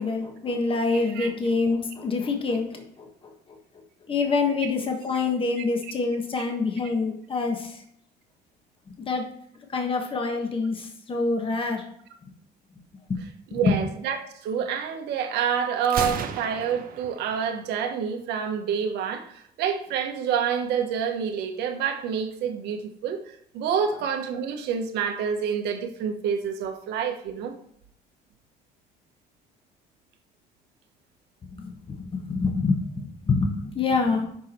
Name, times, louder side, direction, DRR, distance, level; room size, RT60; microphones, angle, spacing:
voice 1, 0.0-3.3 4.1-7.8 8.9-9.2 9.7-11.9 13.1-13.2 13.5-13.8 31.5-34.3, left 4 dB, 30° left, 1.4 m, -26 dB
voice 2, 0.9-1.3 13.5-27.5, right 7 dB, 85° right, 1.3 m, -28 dB
Gunshot gunfire, 15.8-17.8, right 8 dB, 60° right, 0.8 m, -34 dB
6.8 x 4.9 x 4.4 m
cardioid pair, 110°, 17 cm